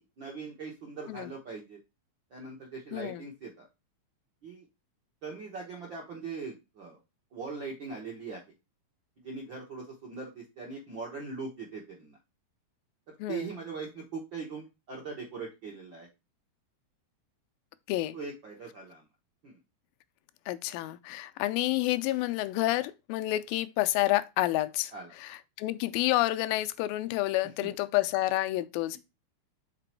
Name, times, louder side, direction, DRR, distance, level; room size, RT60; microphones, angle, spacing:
voice 1, 0.0-1.8 2.3-3.7 4.4-4.6 5.2-7.0 7.3-8.4 9.2-12.2 13.1-16.1 18.1-19.0 19.4-19.6 24.9-25.1 27.6-27.7 28.9-29.0, right 4 dB, 80° right, 1.0 m, -41 dB
voice 2, 2.9-3.2 13.2-13.5 17.9-18.2 20.5-29.0, left 17 dB, 80° left, 2.1 m, -29 dB
5.9 x 4.1 x 4.4 m
omnidirectional pair, 4.3 m